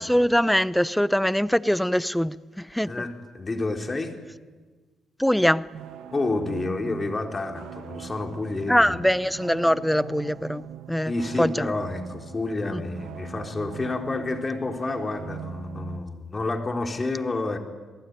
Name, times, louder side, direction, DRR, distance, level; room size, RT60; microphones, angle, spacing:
voice 1, 0.0-2.9 5.2-5.7 8.7-11.1 11.4-11.7 12.7-12.8, equal, 5° left, 0.8 m, -23 dB
voice 2, 2.9-4.1 6.1-9.0 11.1-17.6, left 2 dB, 25° left, 3.8 m, -29 dB
sound 1, 5.7-16.0, right 10 dB, 80° right, 1.3 m, -41 dB
28.0 x 19.0 x 9.6 m
cardioid pair, 90°, 0 cm